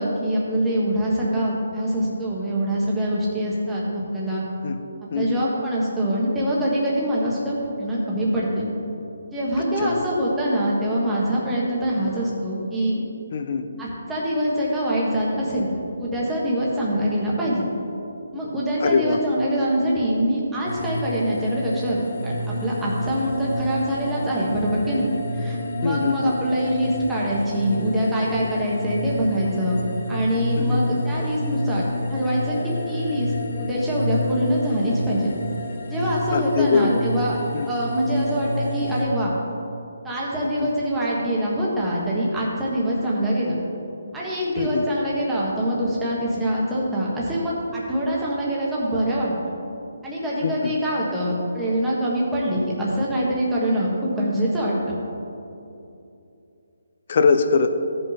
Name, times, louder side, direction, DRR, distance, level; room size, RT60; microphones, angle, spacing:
voice 1, 0.0-4.4 5.1-8.7 9.3-13.0 13.8-15.7 16.0-17.6 18.3-22.0 22.2-25.1 25.3-29.8 30.1-33.3 33.6-35.3 35.9-37.4 37.6-39.3 40.0-43.5 44.1-49.5 50.0-55.0, right 1 dB, 5° right, -6 dB, 1.4 m, -24 dB
voice 2, 5.1-5.5 9.8-10.0 13.3-13.7 18.8-19.2 25.8-26.4 30.6-30.8 36.3-37.0 37.5-37.7 40.6-40.7 44.6-44.9 50.4-50.7 57.1-57.7, left 5 dB, 45° left, 8 dB, 0.6 m, -22 dB
sound 1, 20.7-39.0, left 1 dB, 80° left, 1.9 m, -29 dB
14.0 x 5.4 x 4.2 m, 2.7 s
hypercardioid pair, 165°, 0 cm